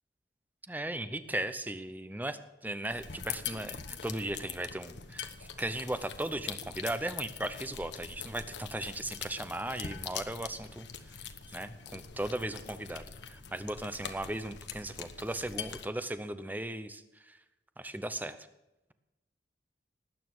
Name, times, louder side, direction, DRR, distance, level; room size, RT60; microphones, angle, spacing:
voice 1, 0.7-11.2 11.5-17.4 17.8-18.4, right 1 dB, 10° right, 11 dB, 0.7 m, -37 dB
sound 1, 2.9-15.9, left 7 dB, 75° left, 1.2 m, -43 dB
19.0 x 9.2 x 6.2 m, 0.97 s
head